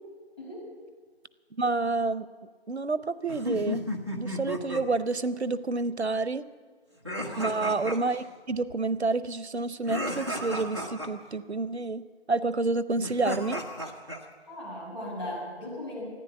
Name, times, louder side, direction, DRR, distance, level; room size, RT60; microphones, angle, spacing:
voice 1, 0.4-0.7 7.2-7.5 14.5-16.1, left 1 dB, 30° left, -7 dB, 6.1 m, -38 dB
voice 2, 1.5-2.3 2.7-3.9 4.1-6.5 7.4-13.6, right 3 dB, 90° right, 15 dB, 0.8 m, -29 dB
sound 1, 3.3-4.8 7.1-8.2 9.8-11.1 13.0-14.2, left 1 dB, 25° right, 1.0 m, -33 dB
15.0 x 10.5 x 8.3 m, 1.5 s
figure-of-eight pair, 175°, 32 cm